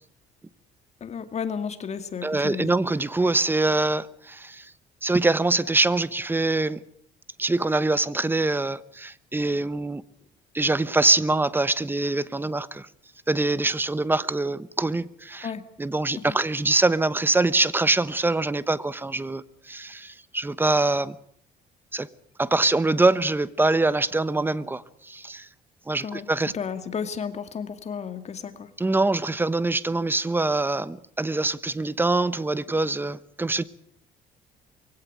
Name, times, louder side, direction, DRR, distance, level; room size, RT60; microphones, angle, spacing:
voice 1, 1.0-2.7 15.4-15.6 16.2-16.4 26.0-26.3 26.5-28.7, left 6 dB, 40° left, 2.3 m, -33 dB
voice 2, 2.2-4.7 5.0-6.8 7.4-10.0 10.5-12.9 13.3-15.5 15.8-21.2 21.9-22.1 22.4-25.5 25.9-26.5 28.8-33.6, right 2 dB, 10° right, 1.1 m, -24 dB
23.5 x 17.0 x 9.0 m
cardioid pair, 110°, 17 cm